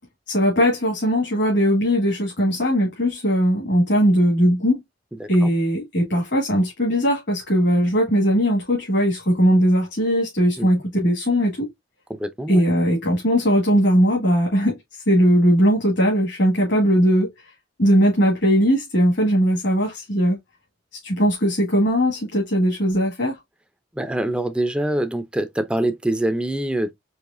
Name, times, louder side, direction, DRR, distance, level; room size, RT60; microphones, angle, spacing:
voice 1, 0.3-4.8 5.3-11.7 12.5-14.8 15.1-17.3 17.8-20.4 21.0-23.4, equal, 70° left, 1.7 m, -19 dB
voice 2, 5.2-5.5 10.6-10.7 12.1-12.6 24.0-26.9, right 1 dB, 5° right, 0.5 m, -24 dB
4.8 x 2.9 x 2.4 m
head